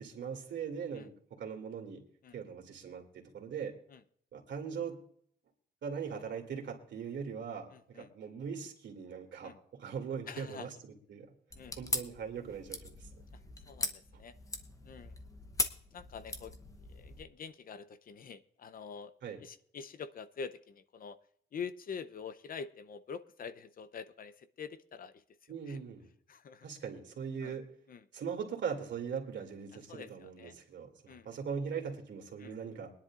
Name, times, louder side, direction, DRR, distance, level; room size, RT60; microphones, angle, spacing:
voice 1, 0.0-2.0 2.3-3.7 4.3-5.0 5.8-11.3 11.8-12.8 19.2-19.4 25.5-26.1 26.6-27.7 28.1-32.9, right 6 dB, 70° right, 2 dB, 2.6 m, -40 dB
voice 2, 7.7-8.1 9.4-9.6 10.3-10.7 11.6-11.8 13.7-14.4 14.8-15.1 15.9-19.1 19.4-21.2 21.5-25.2 25.7-25.8 26.3-26.7 27.4-27.6 27.9-28.0 29.9-30.5 31.1-31.3 32.4-32.5, left 6 dB, 50° left, 13 dB, 0.6 m, -46 dB
sound 1, 11.5-17.2, left 2 dB, 15° left, 0.9 m, -40 dB
23.0 x 10.5 x 2.5 m, 0.62 s
wide cardioid pair, 180°, 19 cm